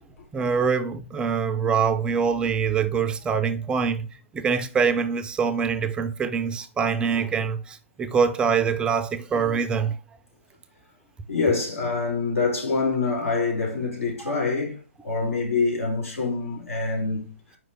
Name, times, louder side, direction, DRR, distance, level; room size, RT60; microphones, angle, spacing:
voice 1, 0.3-4.1 4.3-10.0, right 6 dB, 10° right, 0.4 m, -24 dB
voice 2, 11.3-14.8 15.0-17.2, left 4 dB, 85° left, 2.9 m, -25 dB
5.2 x 4.6 x 4.0 m
hypercardioid pair, 130°, 7 cm